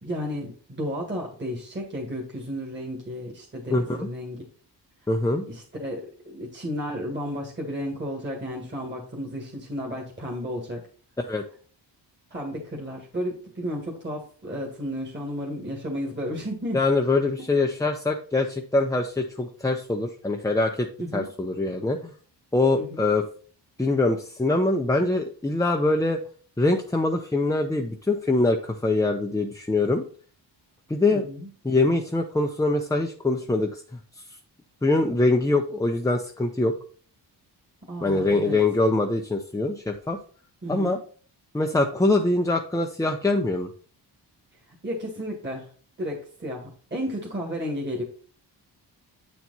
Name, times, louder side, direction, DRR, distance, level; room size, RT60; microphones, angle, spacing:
voice 1, 0.0-4.4 5.5-10.8 12.3-16.8 21.0-21.3 22.7-23.0 31.1-31.5 37.9-38.6 40.6-41.0 44.8-45.7 46.0-48.0, equal, 25° right, -1 dB, 1.8 m, -33 dB
voice 2, 3.7-4.1 5.1-5.4 11.3-11.4 16.7-22.1 22.5-23.2 23.8-26.2 26.6-30.0 30.9-31.2 31.6-33.8 34.8-36.7 38.0-40.2 40.7-41.0 41.5-43.7, left 2 dB, 10° left, 3 dB, 0.7 m, -23 dB
8.3 x 4.6 x 4.0 m, 0.42 s
cardioid pair, 95°, 43 cm